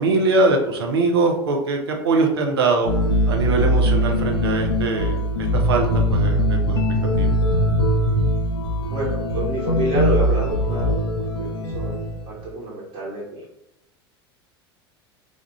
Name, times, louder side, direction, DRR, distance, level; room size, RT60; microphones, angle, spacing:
voice 1, 0.0-2.9 3.3-6.8 7.2-7.3, right 3 dB, 75° right, 2 dB, 0.6 m, -22 dB
sound 1, 2.8-12.4, equal, 70° left, 0.5 m, -21 dB
voice 2, 8.8-11.5 11.7-13.4, right 2 dB, 45° right, -8 dB, 1.1 m, -28 dB
4.3 x 2.3 x 2.3 m, 0.84 s
figure-of-eight pair, 80°, 13 cm